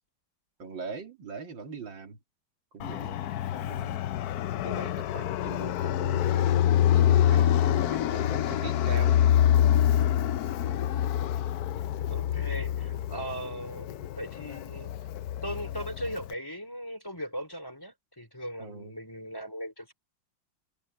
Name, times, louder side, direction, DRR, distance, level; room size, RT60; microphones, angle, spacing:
voice 1, 0.6-2.2 2.7-4.1 4.6-6.6 7.0-9.2 18.6-18.9, right 4 dB, 85° right, 3.6 m, -42 dB
Fixed-wing aircraft airplane, 2.8-16.3, left 11 dB, 65° left, 1.0 m, -26 dB
voice 2, 12.1-14.9 15.4-19.9, equal, 10° left, 3.7 m, -38 dB
omnidirectional pair, 2.0 m